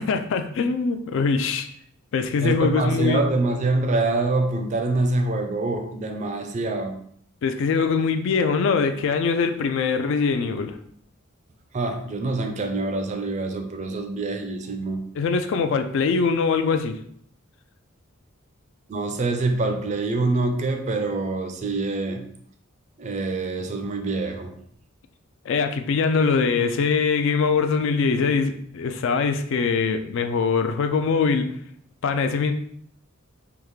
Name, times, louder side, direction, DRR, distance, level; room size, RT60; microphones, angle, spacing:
voice 1, 0.0-1.7 2.1-3.2 7.4-10.8 15.2-17.0 25.5-31.5 32.0-32.5, left 5 dB, 65° left, 8 dB, 0.3 m, -22 dB
voice 2, 2.4-7.0 11.7-15.1 18.9-22.2 23.0-24.6, right 2 dB, 35° right, 6 dB, 0.4 m, -25 dB
3.5 x 2.4 x 3.1 m, 0.64 s
head